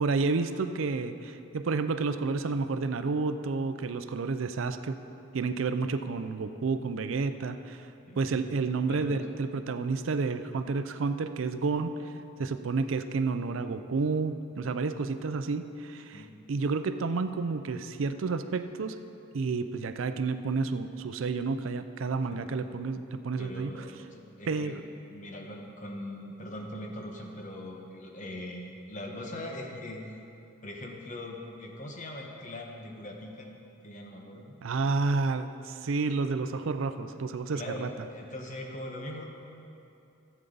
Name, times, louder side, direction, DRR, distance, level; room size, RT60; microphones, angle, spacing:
voice 1, 0.0-5.0 5.3-7.9 8.2-12.1 12.4-19.0 19.3-23.8 24.5-24.8 34.6-37.9, right 4 dB, 75° right, 10 dB, 0.5 m, -30 dB
voice 2, 8.1-8.4 8.9-9.2 16.1-16.3 22.3-22.4 23.4-24.8 25.1-30.1 30.6-33.5 33.8-34.6 37.5-39.3, left 1 dB, 35° left, 1 dB, 1.1 m, -41 dB
14.5 x 8.1 x 3.9 m, 2.8 s
head